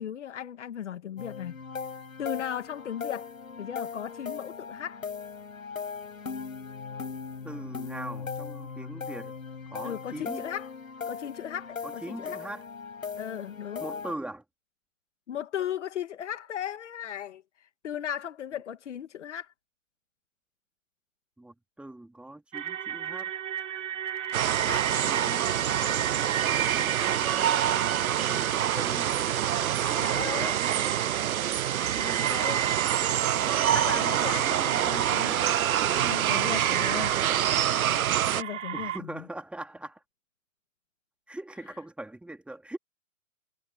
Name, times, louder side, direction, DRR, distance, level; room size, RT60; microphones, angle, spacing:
voice 1, 0.0-1.6 2.2-3.3 3.6-5.0 9.8-10.7 11.1-12.4 13.2-13.9 15.3-17.4 17.8-19.5 24.7-25.1 30.0-30.6 31.9-32.7 33.7-35.4 35.9-37.2 38.4-39.2, left 10 dB, 55° left, 2.0 m, -36 dB
sound 1, 1.2-14.1, left 5 dB, 80° left, 6.2 m, -39 dB
voice 2, 7.4-9.3 9.7-10.5 11.8-12.6 13.8-14.4 21.4-23.3 25.0-25.4 26.4-27.5 28.2-29.2 29.6-30.6 33.4-35.4 38.7-40.0 41.3-42.8, right 1 dB, 5° right, 4.1 m, -41 dB
sound 2, 22.5-39.0, right 10 dB, 60° right, 2.3 m, -35 dB
sound 3, 24.3-38.4, right 10 dB, 90° right, 0.5 m, -26 dB
hypercardioid pair, 130°, 41 cm